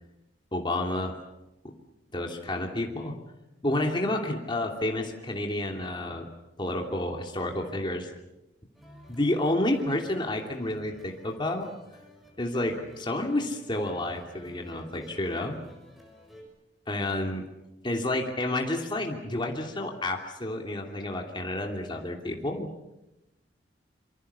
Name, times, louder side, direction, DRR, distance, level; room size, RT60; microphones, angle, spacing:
voice 1, 0.5-1.1 1.6-1.7 2.1-3.1 3.6-6.3 6.6-8.1 9.1-11.7 12.4-15.6 16.9-17.4 17.8-22.7, left 1 dB, 25° left, 2 dB, 2.9 m, -30 dB
sound 1, 8.7-16.4, right 1 dB, ahead, 6.6 m, -51 dB
27.0 x 25.0 x 7.0 m, 0.93 s
head